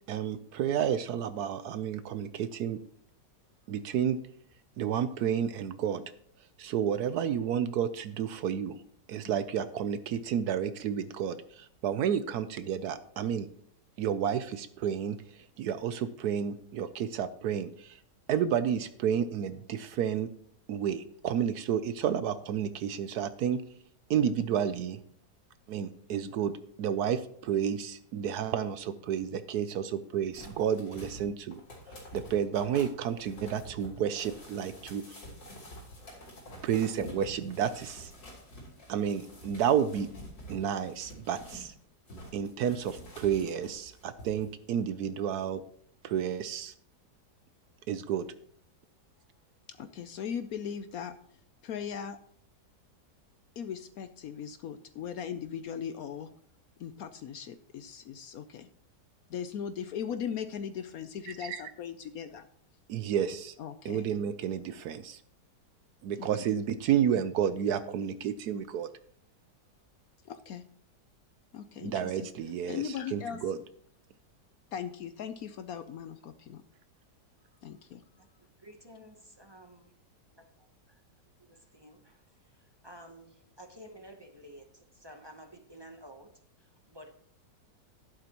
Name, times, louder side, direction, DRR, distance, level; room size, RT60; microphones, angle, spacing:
voice 1, 0.1-2.8 3.7-4.2 4.8-6.0 6.6-8.8 9.1-13.5 14.0-18.0 18.3-20.3 20.7-23.6 24.1-25.0 25.7-26.5 26.8-31.6 32.1-35.0 36.6-38.1 38.9-40.1 40.5-41.7 42.3-45.6 46.0-46.7 47.9-48.3 61.4-61.6 62.9-63.5 63.8-65.2 66.0-68.9 71.8-72.8 73.1-73.6, right 8 dB, 70° right, 13 dB, 1.0 m, -31 dB
sound 1, 30.3-41.7 42.1-44.5 44.8-44.9, equal, 90° left, 4.3 m, -48 dB
voice 2, 49.7-51.1 51.6-52.2 53.6-56.3 56.8-58.7 59.3-62.5 63.6-64.1 66.2-66.3 70.2-70.6 71.5-72.3 72.7-73.4 74.7-76.6 77.6-78.0, left 8 dB, 65° left, 11 dB, 0.9 m, -38 dB
voice 3, 78.6-79.9 80.9-81.0 81.4-82.2 82.8-86.3 86.6-87.1, equal, 20° right, 4 dB, 0.6 m, -51 dB
12.0 x 11.0 x 3.0 m, 0.63 s
omnidirectional pair, 1.9 m